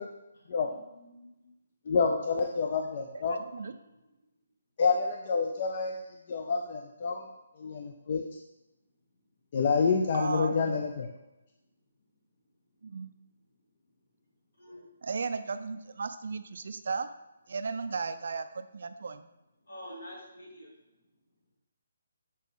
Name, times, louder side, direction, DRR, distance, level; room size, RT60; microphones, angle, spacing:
voice 1, 0.3-1.5 14.6-14.8 19.7-20.7, equal, 65° left, -3 dB, 2.3 m, -48 dB
voice 2, 1.9-3.4 4.8-6.0 6.3-7.3 7.6-8.2 9.5-11.1, left 5 dB, 40° left, 3 dB, 0.5 m, -28 dB
voice 3, 3.1-3.7 10.1-10.8 12.8-13.1 15.0-17.1 17.5-19.3, right 4 dB, 65° right, 10 dB, 0.4 m, -35 dB
7.5 x 4.0 x 3.6 m, 0.98 s
hypercardioid pair, 165°, 0 cm